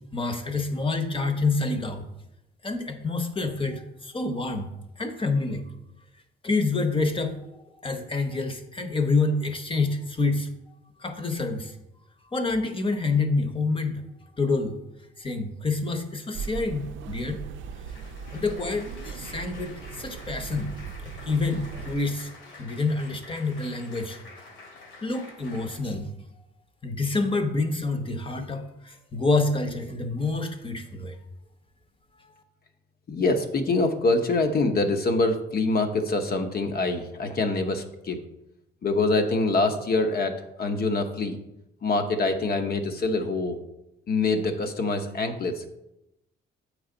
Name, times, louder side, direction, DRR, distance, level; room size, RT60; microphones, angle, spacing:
voice 1, 0.1-2.1 2.6-4.7 5.0-5.6 6.4-7.4 7.8-10.5 11.0-11.7 12.3-14.0 14.4-14.8 15.2-17.4 18.3-20.7 21.0-22.3 22.6-24.2 25.0-26.1 26.8-31.2, left 3 dB, 25° left, 7 dB, 1.0 m, -27 dB
sound 1, 16.3-22.0, right 6 dB, 75° right, 0.5 m, -38 dB
Applause, 17.3-25.8, left 2 dB, 75° left, 2.1 m, -48 dB
voice 2, 33.1-38.2 38.8-41.4 41.8-43.6 44.1-45.6, left 3 dB, 50° left, 7 dB, 0.9 m, -25 dB
7.8 x 4.8 x 3.9 m, 0.89 s
cardioid pair, 90°, 20 cm